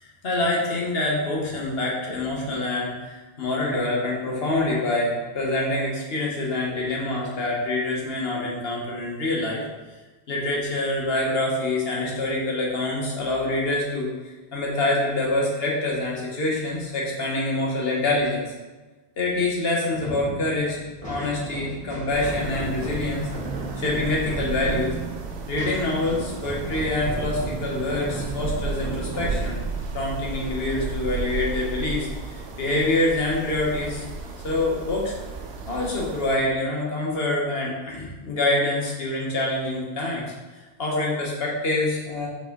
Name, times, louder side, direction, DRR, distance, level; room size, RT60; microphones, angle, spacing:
voice 1, 0.0-9.6 10.3-14.1 14.5-18.4 19.2-23.3 23.8-25.0 25.5-29.6 29.9-34.0 34.4-35.1 35.7-40.2 40.8-42.3, left 2 dB, 70° left, -3 dB, 1.5 m, -26 dB
sound 1, 19.9-31.3, right 2 dB, 35° right, 1.8 m, -35 dB
sound 2, 22.1-36.4, right 4 dB, 85° right, 1.0 m, -34 dB
5.5 x 4.8 x 3.8 m, 1.2 s
omnidirectional pair, 1.1 m